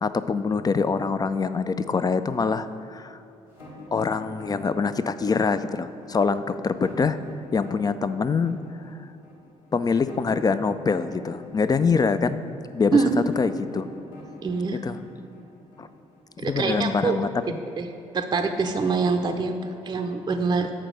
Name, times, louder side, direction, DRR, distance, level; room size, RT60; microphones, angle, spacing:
voice 1, 0.0-2.7 2.9-3.2 3.9-7.2 7.5-8.6 9.7-12.4 12.7-13.0 13.4-13.9 14.8-15.0 15.8-15.9 16.4-17.6, left 5 dB, 25° left, 12 dB, 0.4 m, -24 dB
sound 1, 3.5-16.4, left 2 dB, 85° left, 1.9 m, -46 dB
voice 2, 12.9-13.3 14.4-14.8 16.4-17.2 17.7-17.9 18.1-20.7, right 4 dB, 25° right, 6 dB, 0.6 m, -24 dB
7.4 x 4.2 x 6.4 m, 2.7 s
figure-of-eight pair, 45°, 17 cm